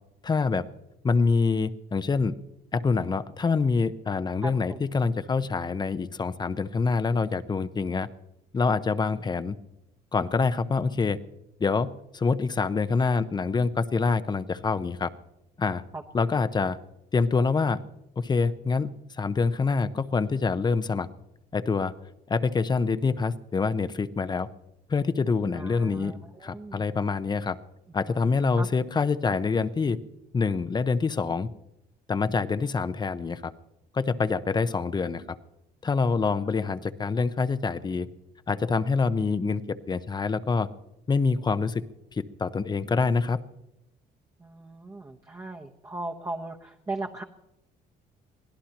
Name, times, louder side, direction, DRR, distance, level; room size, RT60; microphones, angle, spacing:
voice 1, 0.2-0.7 1.0-2.4 2.7-8.1 8.5-9.5 10.1-11.2 11.6-15.1 15.6-15.8 16.1-16.8 17.1-17.8 18.2-21.1 21.5-21.9 22.3-24.5 24.9-26.1 26.4-27.6 27.9-30.0 30.3-31.5 32.1-33.5 33.9-35.4 35.8-38.1 38.5-40.7 41.1-41.8 42.1-43.4, left 4 dB, 25° left, 13 dB, 0.8 m, -26 dB
voice 2, 4.4-4.8 15.9-16.0 25.5-26.8 28.1-28.7 44.4-47.2, right 2 dB, 20° right, 1 dB, 1.1 m, -38 dB
23.0 x 16.5 x 3.0 m, 0.86 s
cardioid pair, 110°, 17 cm